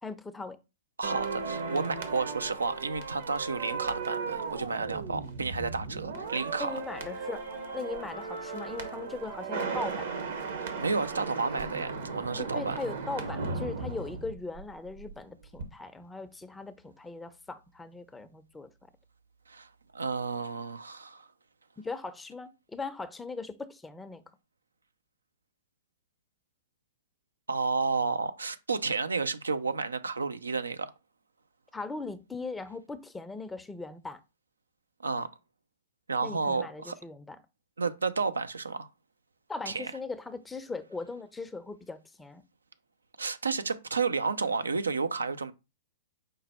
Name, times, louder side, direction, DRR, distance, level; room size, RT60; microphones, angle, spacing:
voice 1, 0.0-0.6 6.6-10.1 12.4-18.7 21.8-24.2 31.7-34.2 36.2-37.4 39.5-42.4, left 3 dB, 10° left, 0.5 m, -39 dB
sound 1, 1.0-15.2 15.4-15.6, right 4 dB, 65° right, 1.0 m, -36 dB
voice 2, 1.0-6.8 10.6-12.8 19.5-21.3 27.5-30.9 35.0-35.3 36.1-37.0 37.8-38.9 39.7-39.9 43.2-45.5, right 4 dB, 85° right, 0.4 m, -31 dB
5.1 x 2.2 x 4.2 m
figure-of-eight pair, 110°, 0 cm